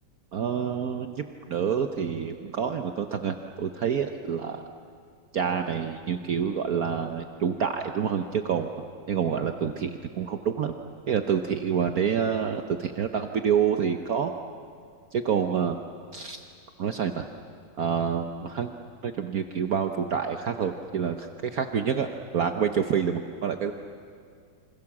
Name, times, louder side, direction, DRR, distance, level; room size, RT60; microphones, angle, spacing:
voice 1, 0.3-4.6 5.3-8.7 9.1-10.7 11.1-14.3 15.1-15.8 16.1-16.4 16.8-17.2 17.8-18.7 19.0-23.7, right 7 dB, 55° right, 6 dB, 1.3 m, -27 dB
27.5 x 26.0 x 7.3 m, 2.2 s
omnidirectional pair, 2.0 m